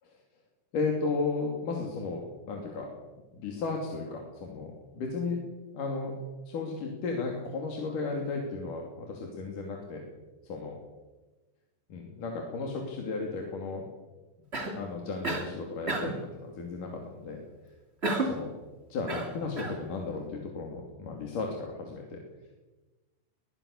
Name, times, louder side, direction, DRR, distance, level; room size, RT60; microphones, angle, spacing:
voice 1, 0.7-2.9 3.3-5.4 5.7-6.2 6.5-10.0 10.4-10.8 11.9-13.9 14.7-17.4 18.2-18.5 18.9-22.2, left 4 dB, 50° left, 1 dB, 3.9 m, -34 dB
Cough, 14.5-14.8 15.2-15.5 15.9-16.2 18.0-18.5 19.1-19.8, right 2 dB, 65° right, 0.6 m, -31 dB
22.0 x 21.0 x 6.7 m, 1.2 s
omnidirectional pair, 5.5 m